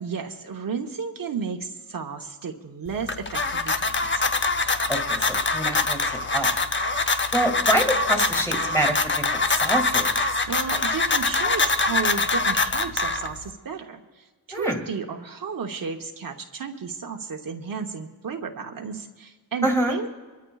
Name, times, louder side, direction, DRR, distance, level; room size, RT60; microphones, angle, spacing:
voice 1, 0.0-4.4 10.5-20.1, right 5 dB, 60° right, 3 dB, 1.0 m, -33 dB
sound 1, 2.9-13.5, left 3 dB, 30° left, 0.7 m, -24 dB
voice 2, 4.9-6.0 6.3-6.5 7.3-10.1 14.5-14.8 19.6-20.0, right 1 dB, 5° left, 3 dB, 2.4 m, -26 dB
25.5 x 13.0 x 2.4 m, 1.4 s
cardioid pair, 80°, 39 cm